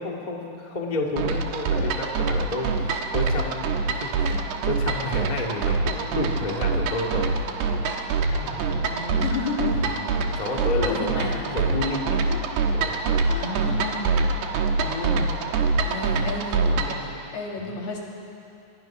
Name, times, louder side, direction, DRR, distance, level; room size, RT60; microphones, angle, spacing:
voice 1, 0.0-4.4 4.6-7.4 8.4-8.7 9.7-10.1 10.3-12.4 12.7-13.2 17.5-17.8, left 2 dB, 25° left, 0 dB, 0.8 m, -31 dB
sound 1, 1.2-17.0, right 4 dB, 75° right, 3.2 m, -25 dB
voice 2, 8.3-9.8 10.7-11.6 13.3-14.2 14.8-15.3 15.8-18.0, left 3 dB, 70° left, -1 dB, 4.6 m, -32 dB
25.5 x 21.0 x 6.1 m, 2.6 s
omnidirectional pair, 4.8 m